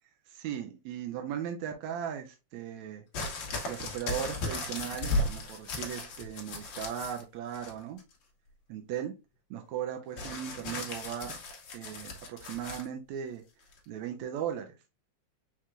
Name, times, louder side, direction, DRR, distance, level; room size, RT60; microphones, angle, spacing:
voice 1, 0.3-3.0 3.7-8.0 8.7-9.1 9.5-11.4 11.7-13.4 13.9-14.7, right 9 dB, 75° right, 1.8 m, -37 dB
sound 1, 3.1-7.2 7.5-8.1 10.2-12.9 13.7-13.8, left 2 dB, 65° left, 1.1 m, -36 dB
4.7 x 4.4 x 2.4 m
omnidirectional pair, 3.5 m